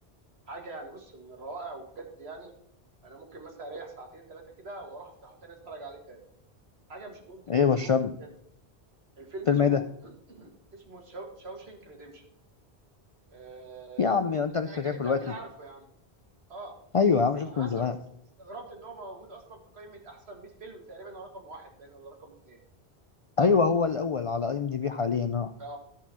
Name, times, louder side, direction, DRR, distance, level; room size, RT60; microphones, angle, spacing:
voice 1, 0.5-2.5 3.0-6.2 6.9-7.9 9.2-12.3 13.3-14.2 14.6-15.9 16.5-16.8 17.4-17.9 18.4-22.6 25.6-25.8, right 2 dB, 75° right, 3 dB, 2.0 m, -44 dB
voice 2, 7.5-8.1 9.5-9.8 14.0-15.2 16.9-18.0 23.4-25.5, left 5 dB, 50° left, 9 dB, 0.4 m, -24 dB
13.0 x 4.5 x 5.6 m, 0.73 s
omnidirectional pair, 1.1 m